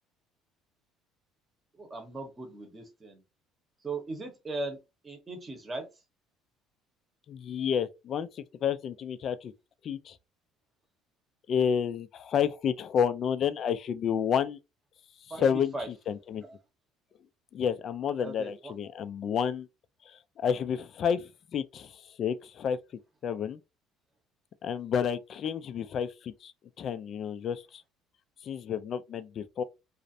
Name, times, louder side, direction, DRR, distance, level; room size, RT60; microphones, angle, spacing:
voice 1, 1.7-3.2 3.8-5.9 15.3-15.9 16.4-16.5 18.2-18.7, right 2 dB, 25° right, 0.8 m, -38 dB
voice 2, 7.3-9.5 9.8-10.2 11.5-14.6 15.4-16.4 17.5-19.7 20.1-22.8 23.2-23.6 24.6-26.5 26.8-27.8 28.4-29.6, left 7 dB, 45° left, 0.3 m, -30 dB
2.4 x 2.0 x 2.6 m
cardioid pair, 120°, 0 cm